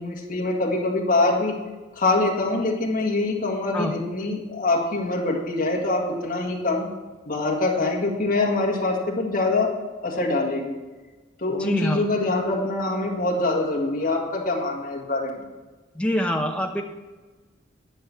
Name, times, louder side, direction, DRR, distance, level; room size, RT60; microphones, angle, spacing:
voice 1, 0.0-1.5 1.9-6.9 7.3-9.7 10.0-10.8 11.4-15.4, left 2 dB, 45° left, -1 dB, 2.0 m, -24 dB
voice 2, 11.6-12.0 15.9-16.8, left 1 dB, 5° left, 3 dB, 0.8 m, -25 dB
11.0 x 6.1 x 7.1 m, 1.3 s
head